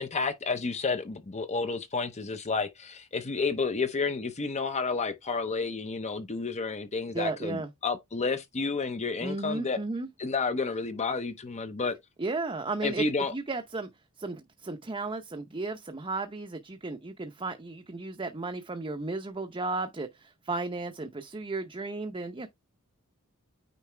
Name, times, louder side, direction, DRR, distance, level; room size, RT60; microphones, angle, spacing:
voice 1, 0.0-9.8 10.2-12.0 12.8-13.3, left 4 dB, 30° left, 0.7 m, -31 dB
voice 2, 7.1-7.7 9.2-10.1 12.2-13.0 13.3-13.9 14.2-22.5, right 3 dB, 25° right, 0.7 m, -34 dB
9.3 x 4.1 x 3.3 m
head